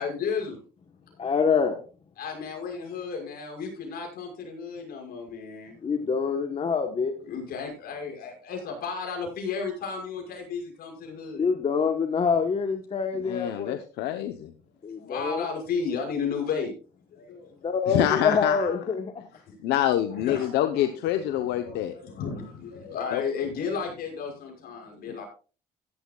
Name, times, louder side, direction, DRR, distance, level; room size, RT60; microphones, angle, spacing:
voice 1, 0.0-0.6 2.2-5.7 7.2-11.5 15.0-16.7 17.1-17.5 19.3-19.5 20.1-25.2, left 5 dB, 65° left, 2 dB, 6.0 m, -33 dB
voice 2, 1.2-1.8 5.8-7.1 11.4-13.8 14.8-15.4 17.6-19.1, left 5 dB, 35° left, 6 dB, 1.2 m, -25 dB
voice 3, 13.2-14.5 17.9-18.7 19.6-21.9 23.1-23.2, left 12 dB, 85° left, 8 dB, 0.9 m, -26 dB
16.0 x 12.0 x 2.4 m, 0.37 s
cardioid pair, 110°, 17 cm